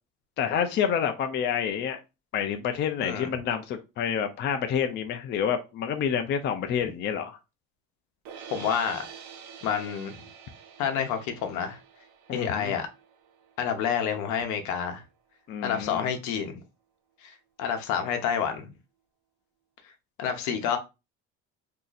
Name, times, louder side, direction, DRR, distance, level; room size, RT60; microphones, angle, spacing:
voice 1, 0.4-2.0 2.3-7.4 12.3-12.7 15.5-16.1, left 8 dB, 40° left, 0.4 m, -28 dB
sound 1, 8.3-14.4, right 7 dB, 75° right, 0.8 m, -47 dB
voice 2, 8.5-9.0 9.6-10.2 10.8-11.8 12.3-12.9 13.6-15.0 15.6-16.6 17.2-17.3 17.6-18.7 20.2-20.8, left 7 dB, 75° left, 0.8 m, -28 dB
2.7 x 2.4 x 3.9 m
cardioid pair, 145°, 29 cm